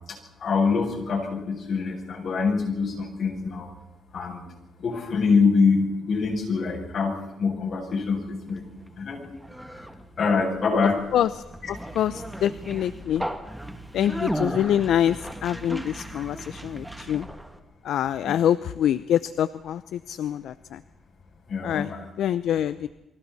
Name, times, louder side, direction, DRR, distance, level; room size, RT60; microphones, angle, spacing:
voice 1, 0.1-3.7 4.1-4.4 4.8-8.6 9.0-9.2 10.2-11.0 14.0-14.3 18.2-18.4 21.5-22.0, left 4 dB, 55° left, 2 dB, 7.5 m, -25 dB
Conversation, 8.1-17.6, right 1 dB, ahead, 2.4 m, -36 dB
voice 2, 11.1-13.3 13.9-17.3 17.8-20.8 21.6-21.9 22.2-22.9, left 10 dB, 75° left, 15 dB, 0.7 m, -25 dB
29.0 x 24.5 x 4.2 m, 0.99 s
cardioid pair, 90°, 0 cm